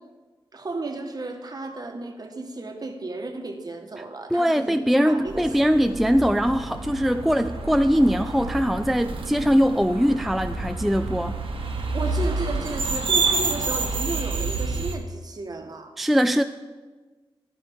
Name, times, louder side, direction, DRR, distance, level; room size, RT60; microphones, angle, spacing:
voice 1, 0.5-5.8 11.9-16.0, right 3 dB, 45° right, 4 dB, 1.3 m, -34 dB
voice 2, 4.3-11.4 16.0-16.4, equal, ahead, 9 dB, 0.3 m, -21 dB
sound 1, 5.3-15.0, right 3 dB, 70° right, 1.3 m, -28 dB
11.5 x 11.0 x 3.6 m, 1.3 s
cardioid pair, 75°, 9 cm